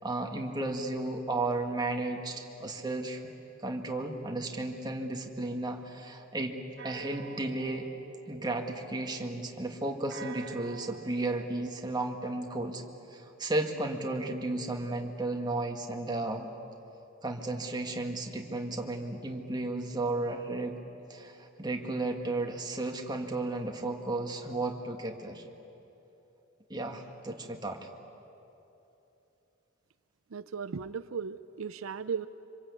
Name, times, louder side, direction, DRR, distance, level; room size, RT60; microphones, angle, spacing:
voice 1, 0.0-3.2 3.6-6.6 6.8-7.9 8.3-12.8 13.1-16.5 17.2-20.8 21.1-25.4 26.7-27.9, right 2 dB, 20° right, 2 dB, 2.0 m, -34 dB
sound 1, 6.8-11.9, right 5 dB, 55° right, 1.6 m, -49 dB
voice 2, 30.3-32.3, right 6 dB, 80° right, 12 dB, 0.6 m, -36 dB
26.0 x 25.5 x 8.4 m, 3.0 s
head